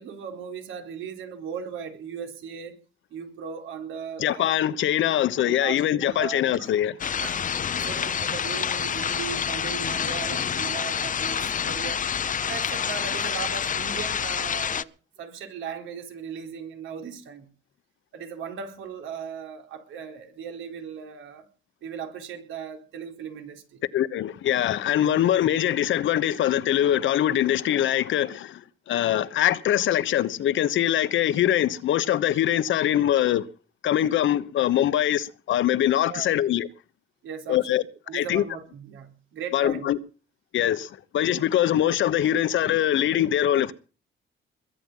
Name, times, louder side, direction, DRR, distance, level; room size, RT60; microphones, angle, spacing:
voice 1, 0.0-2.8 3.1-4.6 5.4-6.7 7.2-7.4 7.8-12.0 12.5-14.9 15.2-17.5 18.1-21.5 21.8-23.8 25.0-25.1 36.1-36.4 37.2-39.9, right 7 dB, 85° right, 4.1 m, -37 dB
voice 2, 4.2-7.0 23.9-33.5 33.8-36.7 37.5-37.8 38.1-38.4 39.5-40.0 40.5-43.7, left 11 dB, 75° left, 1.2 m, -23 dB
sound 1, 7.0-14.8, left 7 dB, 40° left, 0.8 m, -28 dB
22.0 x 9.0 x 5.6 m
cardioid pair, 90°, 20 cm